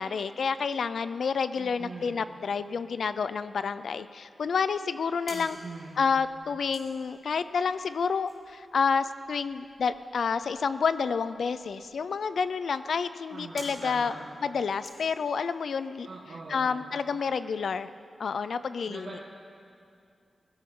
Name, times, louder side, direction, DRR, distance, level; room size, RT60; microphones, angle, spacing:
voice 1, 0.0-5.6 6.0-14.1 14.4-16.1 16.5-17.9 18.2-19.2, left 5 dB, 75° left, 13 dB, 0.5 m, -29 dB
voice 2, 1.6-2.2 5.3-6.0 13.3-14.2 16.0-16.7 18.9-19.2, right 3 dB, 60° right, -6 dB, 1.9 m, -42 dB
sound 1, 5.3-15.8, equal, 20° left, 3.5 m, -52 dB
20.5 x 16.0 x 3.8 m, 2.4 s
wide cardioid pair, 145°, 0 cm